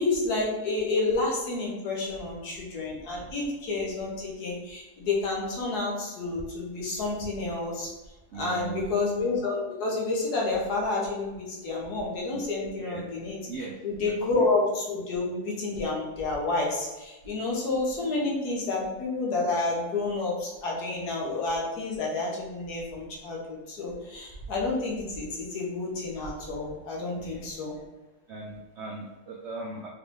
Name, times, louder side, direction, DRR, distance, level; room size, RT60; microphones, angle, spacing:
voice 1, 0.0-7.9 8.3-13.4 13.8-27.7, left 3 dB, 80° left, -3 dB, 1.5 m, -29 dB
voice 2, 8.3-8.9 12.3-12.4 12.8-13.1 13.5-13.7 14.0-14.1 27.1-27.5 28.3-29.9, right 3 dB, 75° right, -1 dB, 0.6 m, -39 dB
4.2 x 3.4 x 2.6 m, 1.1 s
omnidirectional pair, 1.7 m